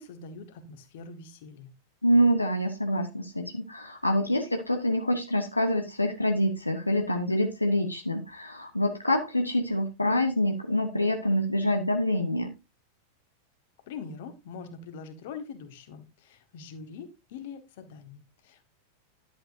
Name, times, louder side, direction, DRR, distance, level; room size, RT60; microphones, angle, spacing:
voice 1, 0.0-1.7 13.9-18.6, left 5 dB, 50° left, 8 dB, 1.5 m, -43 dB
voice 2, 2.0-12.5, equal, 85° left, 4 dB, 0.8 m, -26 dB
11.0 x 7.7 x 2.6 m, 0.26 s
figure-of-eight pair, 90°, 0 cm